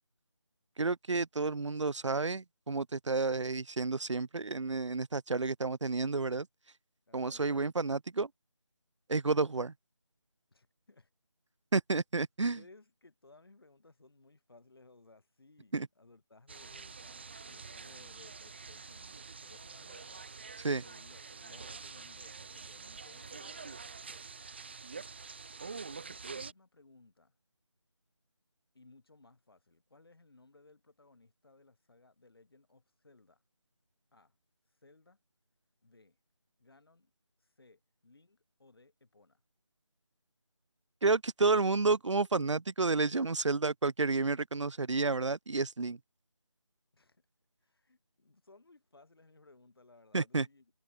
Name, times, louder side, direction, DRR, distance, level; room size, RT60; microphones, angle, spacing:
voice 1, 0.8-6.5 7.1-8.3 9.1-9.7 11.7-12.6 15.7-15.9 20.6-20.8 41.0-46.0 50.1-50.5, right 3 dB, 85° right, 0.5 m, -30 dB
voice 2, 7.1-7.5 10.5-11.1 12.5-20.3 20.8-24.2 25.6-27.3 28.7-33.4 34.1-34.4 34.8-35.2 35.8-36.2 36.6-37.1 37.4-39.4 46.9-47.2 47.6-50.7, left 3 dB, 55° left, 7.3 m, -61 dB
sound 1, 16.5-26.5, right 5 dB, 25° right, 0.9 m, -46 dB
figure-of-eight pair, 165°, 15 cm